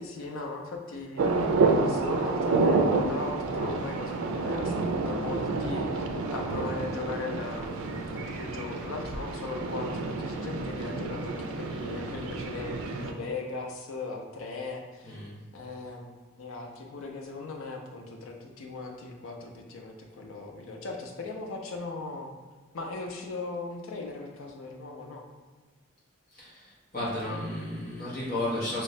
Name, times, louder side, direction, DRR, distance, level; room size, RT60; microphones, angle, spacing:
voice 1, 0.0-15.2 15.5-16.1 16.4-22.3 22.7-25.3, left 3 dB, 80° left, 2 dB, 0.5 m, -38 dB
sound 1, 1.2-13.1, right 3 dB, 90° right, 0.4 m, -29 dB
voice 2, 15.0-15.3 26.3-26.7 26.9-28.8, left 1 dB, 45° left, -7 dB, 1.1 m, -33 dB
3.1 x 2.7 x 3.2 m, 1.4 s
head